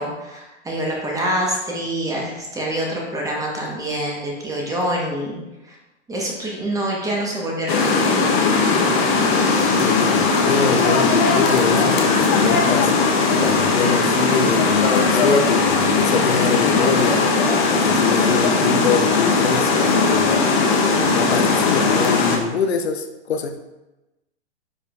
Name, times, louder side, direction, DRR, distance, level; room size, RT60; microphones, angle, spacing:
voice 1, 0.0-5.7 6.1-8.3, right 1 dB, 10° right, -2 dB, 1.4 m, -26 dB
sound 1, 7.7-22.4, left 4 dB, 40° left, 1.3 m, -18 dB
voice 2, 9.8-12.9 13.4-17.3 17.8-20.3 21.1-23.6, left 5 dB, 65° left, 7 dB, 0.8 m, -24 dB
9.5 x 5.1 x 2.6 m, 1.0 s
figure-of-eight pair, 110°, 35 cm